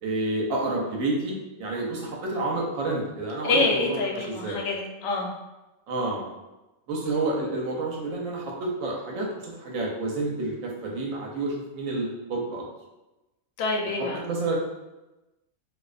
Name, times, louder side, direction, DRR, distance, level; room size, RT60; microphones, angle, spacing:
voice 1, 0.0-4.6 5.9-6.2 6.9-12.6 14.0-14.6, right 2 dB, 75° right, -2 dB, 1.0 m, -29 dB
voice 2, 3.4-5.3 13.6-14.2, left 3 dB, 70° left, 0 dB, 0.9 m, -26 dB
2.5 x 2.1 x 2.4 m, 1.0 s
omnidirectional pair, 1.5 m